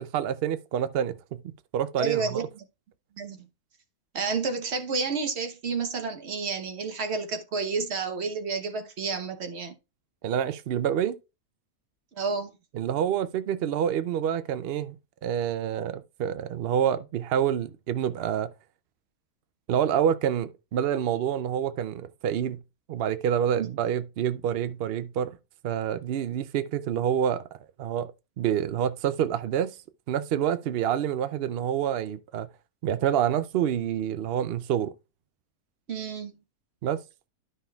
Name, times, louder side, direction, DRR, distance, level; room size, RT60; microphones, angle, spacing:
voice 1, 0.0-1.4 1.7-2.4 10.2-11.2 12.7-14.9 15.2-18.5 19.7-22.6 22.9-25.3 25.6-27.4 27.8-29.8 30.1-32.5 32.8-34.9 36.8-37.0, right 9 dB, 70° right, 0.5 m, -27 dB
voice 2, 2.0-2.7 3.1-3.4 4.1-9.7 12.1-12.6 23.6-23.7 35.9-36.4, right 4 dB, 50° right, 1.2 m, -30 dB
12.5 x 5.6 x 2.3 m
omnidirectional pair, 1.5 m